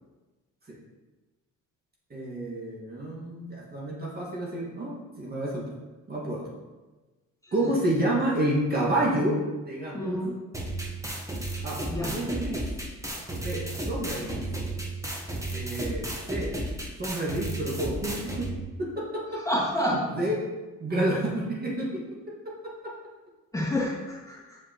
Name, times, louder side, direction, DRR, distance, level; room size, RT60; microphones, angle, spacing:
voice 1, 2.1-5.6 6.1-6.5 7.5-9.4 9.7-10.2 11.6-12.7 13.4-14.5 15.5-16.5 17.0-18.5 18.8-19.4 19.8-20.4 20.8-22.9, right 1 dB, 30° right, -5 dB, 1.8 m, -29 dB
voice 2, 9.9-10.4 11.9-12.1 19.5-20.0 23.5-24.6, left 1 dB, 10° left, -6 dB, 1.9 m, -29 dB
sound 1, 10.5-18.5, right 1 dB, 10° right, 1.1 m, -33 dB
7.5 x 4.8 x 3.0 m, 1.2 s
cardioid pair, 90°, 30 cm